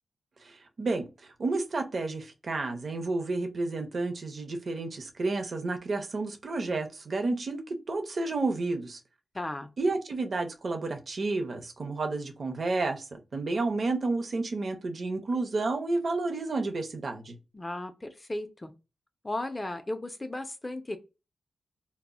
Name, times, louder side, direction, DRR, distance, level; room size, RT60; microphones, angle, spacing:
voice 1, 0.4-9.0 9.8-17.4, right 3 dB, 55° right, 0.6 m, -31 dB
voice 2, 9.3-9.7 17.5-18.7 19.2-21.0, left 1 dB, 25° left, 0.4 m, -35 dB
2.1 x 2.0 x 3.5 m
cardioid pair, 85°, 0 cm